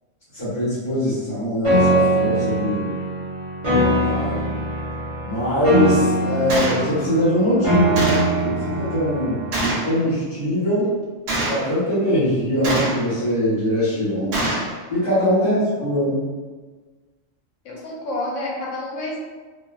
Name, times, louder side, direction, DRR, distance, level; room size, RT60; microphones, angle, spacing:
voice 1, 0.3-2.9 3.6-4.5 5.2-10.9 11.5-14.5 14.9-16.2, left 1 dB, 35° left, -14 dB, 1.4 m, -22 dB
Piano, 1.6-9.6, right 1 dB, 30° right, 0.6 m, -22 dB
Gunshot gunfire, 6.5-6.8 8.0-8.4 9.5-9.9 11.3-11.7 12.6-13.1 14.3-14.7, right 1 dB, 60° right, 0.8 m, -24 dB
voice 2, 17.6-19.2, left 1 dB, 75° left, -2 dB, 0.9 m, -30 dB
2.7 x 2.6 x 2.3 m, 1.4 s
omnidirectional pair, 1.3 m